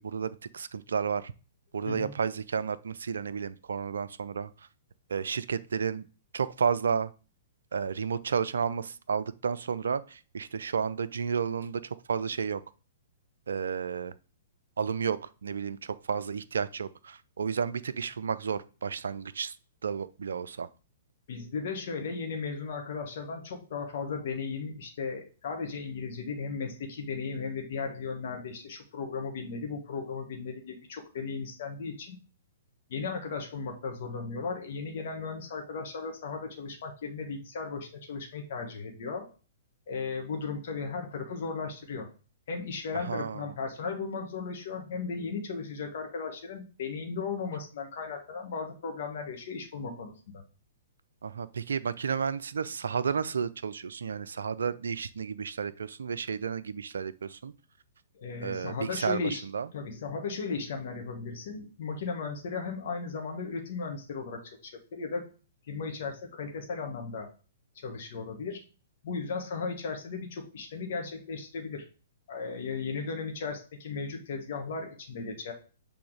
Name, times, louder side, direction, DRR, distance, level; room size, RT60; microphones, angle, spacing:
voice 1, 0.0-1.3 1.7-4.5 5.1-6.0 6.3-7.1 7.7-11.8 12.1-12.6 13.5-14.1 14.8-19.6 19.8-20.7 43.1-43.4 51.2-57.5 58.4-59.7, right 6 dB, 65° right, 0.4 m, -32 dB
voice 2, 21.3-32.2 32.9-39.3 39.9-42.1 42.5-50.4 58.1-59.4 59.7-65.3 65.7-67.3 67.8-68.6 69.0-71.8 72.3-75.5, left 4 dB, 55° left, 1.5 m, -36 dB
6.1 x 3.5 x 4.6 m
figure-of-eight pair, 115°, 0 cm